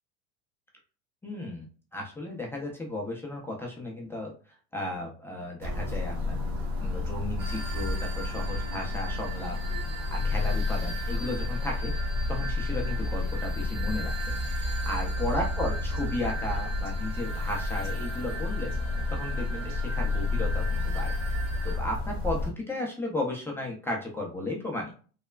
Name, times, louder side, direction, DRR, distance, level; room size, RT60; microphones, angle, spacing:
voice 1, 1.2-1.7 1.9-4.3 4.7-6.4 6.8-9.6 10.1-18.7 19.1-21.1 21.6-25.0, left 1 dB, 5° left, -2 dB, 0.4 m, -35 dB
sound 1, 5.6-22.5, left 3 dB, 50° right, 1.1 m, -30 dB
sound 2, 7.4-21.8, right 4 dB, 80° right, 1.0 m, -41 dB
3.2 x 2.1 x 2.3 m, 0.38 s
hypercardioid pair, 110°, 37 cm